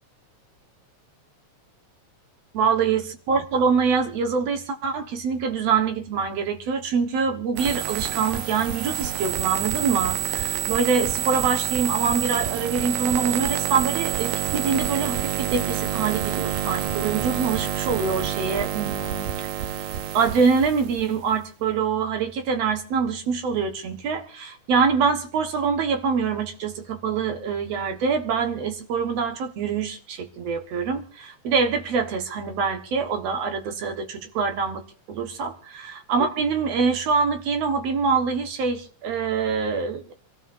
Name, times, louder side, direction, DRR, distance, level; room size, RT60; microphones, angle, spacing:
voice 1, 2.5-19.3 20.1-34.8 35.1-40.1, right 5 dB, 65° right, 6 dB, 2.4 m, -25 dB
sound 1, 7.6-21.4, right 11 dB, 85° right, 2.3 m, -28 dB
27.5 x 13.5 x 2.6 m, 0.40 s
omnidirectional pair, 3.3 m